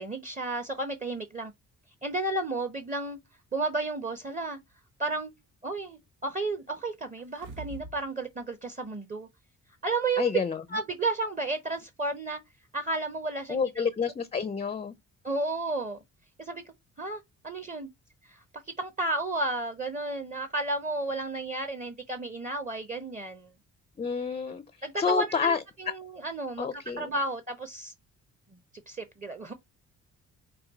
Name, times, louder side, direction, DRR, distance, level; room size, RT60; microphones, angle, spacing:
voice 1, 0.0-1.5 2.0-3.2 3.5-4.6 5.0-5.3 5.6-9.3 9.8-10.3 10.7-12.4 12.7-13.8 15.2-16.0 16.4-16.6 17.0-17.9 18.2-18.4 18.8-23.5 24.8-26.7 27.0-27.9 28.9-29.5, right 2 dB, 25° right, 0.8 m, -32 dB
sound 1, 7.2-8.0 8.4-8.5, right 2 dB, 90° right, 1.3 m, -43 dB
voice 2, 10.2-10.6 13.5-14.9 24.0-24.6 25.0-25.6 26.6-27.2, left 6 dB, 20° left, 0.4 m, -29 dB
5.1 x 2.3 x 3.9 m
cardioid pair, 90°, 30 cm